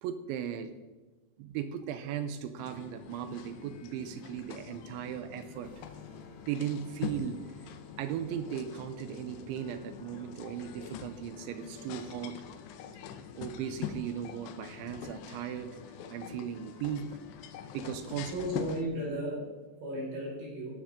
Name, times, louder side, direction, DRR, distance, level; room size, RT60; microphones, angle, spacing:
voice 1, 0.0-0.7 1.4-5.7 6.5-7.4 8.0-12.4 13.4-15.8 16.1-17.0 17.7-18.3, right 9 dB, 80° right, 10 dB, 3.0 m, -37 dB
sound 1, 2.6-18.8, left 8 dB, 80° left, 2.6 m, -44 dB
sound 2, 5.6-10.6, left 3 dB, 45° left, 2.1 m, -56 dB
voice 2, 18.3-20.8, equal, 60° right, -5 dB, 7.4 m, -35 dB
15.0 x 12.5 x 3.7 m, 1.2 s
omnidirectional pair, 5.6 m